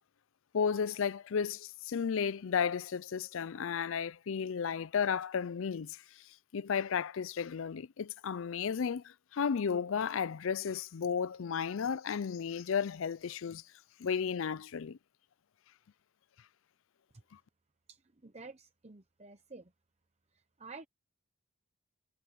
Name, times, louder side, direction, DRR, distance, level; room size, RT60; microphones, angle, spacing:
voice 1, 0.5-6.0 6.5-13.6 14.0-15.0, left 6 dB, 65° left, 0.4 m, -33 dB
voice 2, 17.9-19.7 20.3-20.9, right 3 dB, 30° right, 0.9 m, -51 dB
head